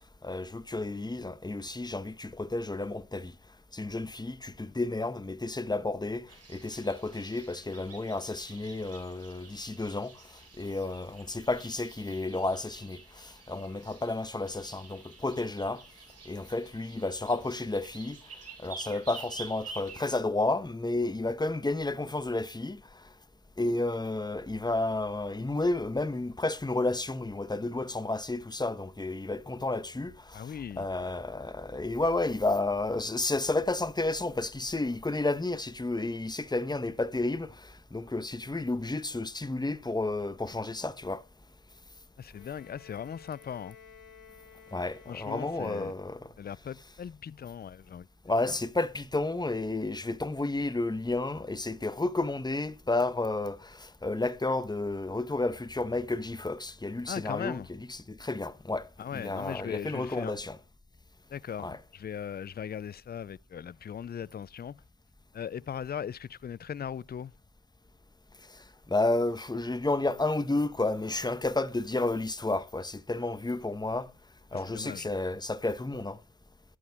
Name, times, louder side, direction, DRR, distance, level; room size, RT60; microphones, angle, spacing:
voice 1, 0.2-3.3 3.7-10.1 10.6-15.8 16.2-18.2 18.6-22.8 23.6-41.2 44.7-46.3 48.2-60.6 61.6-61.8 68.9-74.1 74.5-76.2, left 2 dB, 15° left, 1.1 m, -31 dB
sound 1, 6.3-20.2, right 4 dB, 50° right, 3.5 m, -49 dB
voice 2, 30.3-30.9 42.2-43.8 45.1-45.9 46.4-48.1 48.5-48.6 57.1-57.7 59.0-60.4 61.3-64.8 65.3-67.3 74.5-75.1, left 8 dB, 30° left, 0.5 m, -39 dB
Bowed string instrument, 42.3-46.1, left 7 dB, 80° left, 2.7 m, -54 dB
12.0 x 9.6 x 3.5 m
supercardioid pair, 55°, 32 cm